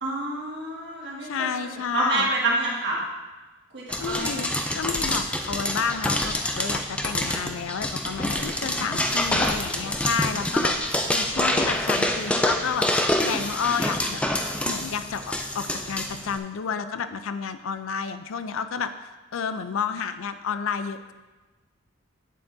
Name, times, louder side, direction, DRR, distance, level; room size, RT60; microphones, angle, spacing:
voice 1, 0.0-3.0 3.7-4.5, right 2 dB, 55° right, -4 dB, 1.7 m, -28 dB
voice 2, 1.2-2.3 4.0-14.2 14.6-18.9 19.3-21.1, left 6 dB, 80° left, 10 dB, 0.4 m, -30 dB
sound 1, 3.9-16.4, left 1 dB, 5° left, 0.3 m, -26 dB
8.3 x 7.4 x 2.6 m, 1.2 s
head